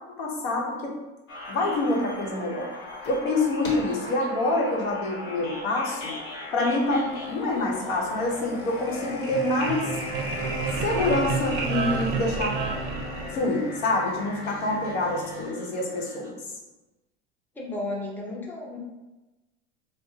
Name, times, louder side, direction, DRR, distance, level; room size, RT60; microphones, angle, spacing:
voice 1, 0.2-0.9 1.5-2.7 3.1-6.1 6.5-9.9 10.8-12.6 13.3-16.3, left 2 dB, 85° left, -1 dB, 0.9 m, -26 dB
sound 1, 1.3-16.3, left 3 dB, 40° left, 1.0 m, -38 dB
sound 2, 2.8-3.3 3.6-4.1 4.5-4.8 5.4-5.5 5.7-5.8 6.8-15.4, left 3 dB, 70° left, 1.1 m, -44 dB
sound 3, 9.1-13.8, right 5 dB, 35° right, 0.5 m, -30 dB
voice 2, 17.6-18.8, left 2 dB, 5° left, -2 dB, 0.6 m, -33 dB
4.8 x 2.1 x 2.7 m, 1.1 s
supercardioid pair, 115°, 31 cm